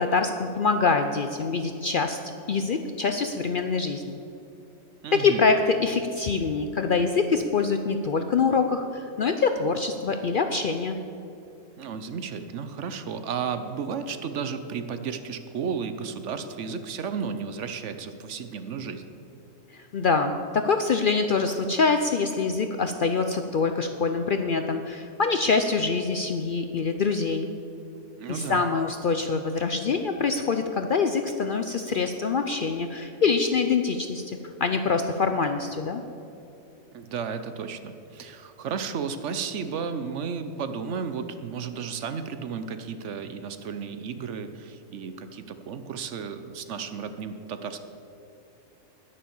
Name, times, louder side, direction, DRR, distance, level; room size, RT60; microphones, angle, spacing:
voice 1, 0.0-2.2 2.5-4.2 5.1-11.0 19.7-27.5 28.3-36.0, left 4 dB, 55° left, 7 dB, 0.6 m, -25 dB
voice 2, 5.0-5.5 11.8-19.0 28.2-28.6 36.9-47.8, right 6 dB, 65° right, 10 dB, 1.0 m, -33 dB
10.0 x 9.7 x 7.1 m, 2.8 s
omnidirectional pair, 1.4 m